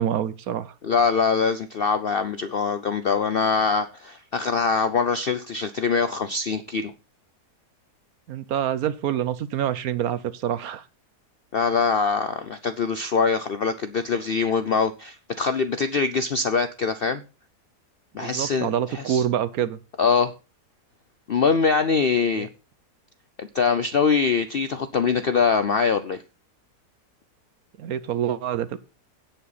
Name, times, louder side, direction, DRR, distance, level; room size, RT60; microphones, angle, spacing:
voice 1, 0.0-0.7 8.3-10.8 18.2-19.8 22.4-22.5 27.8-28.8, right 10 dB, 70° right, 1.1 m, -26 dB
voice 2, 0.8-6.9 11.5-17.2 18.1-18.7 18.9-19.2 20.0-20.3 21.3-22.5 23.4-26.2, left 5 dB, 60° left, 0.6 m, -23 dB
17.0 x 5.7 x 4.1 m
omnidirectional pair, 1.7 m